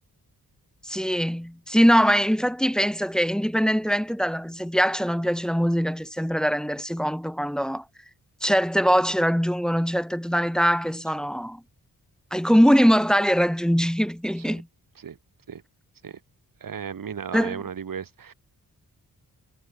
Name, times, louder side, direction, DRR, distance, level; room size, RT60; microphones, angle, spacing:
voice 1, 0.8-7.8 8.4-11.6 12.3-14.7 17.3-17.6, equal, ahead, 1.5 m, -22 dB
voice 2, 16.6-18.3, right 7 dB, 65° right, 4.3 m, -35 dB
wide cardioid pair, 165°, 36 cm